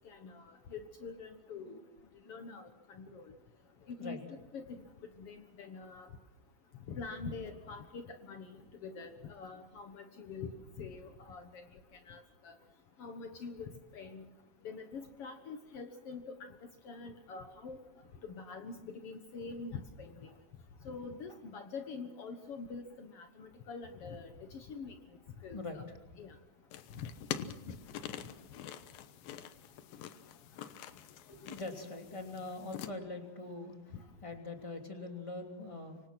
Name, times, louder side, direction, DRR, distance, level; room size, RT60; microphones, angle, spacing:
voice 1, 0.0-1.8 2.3-2.6 2.9-3.2 3.9-4.2 4.5-4.8 5.2-6.1 6.9-11.6 12.1-12.5 13.0-14.3 14.6-16.4 16.8-17.8 18.2-20.3 20.8-25.0 25.4-25.8 26.2-26.3 26.9-27.1, left 4 dB, 90° left, 6 dB, 1.2 m, -45 dB
voice 2, 2.2-2.6 3.1-3.2 3.6-4.2 20.3-20.4 21.3-21.4 25.5-26.0 31.3-34.0 34.2-36.1, left 2 dB, 10° left, 4 dB, 2.1 m, -44 dB
sound 1, 26.7-32.9, left 10 dB, 70° left, 2.6 m, -45 dB
26.5 x 24.5 x 6.1 m, 0.98 s
omnidirectional pair, 4.8 m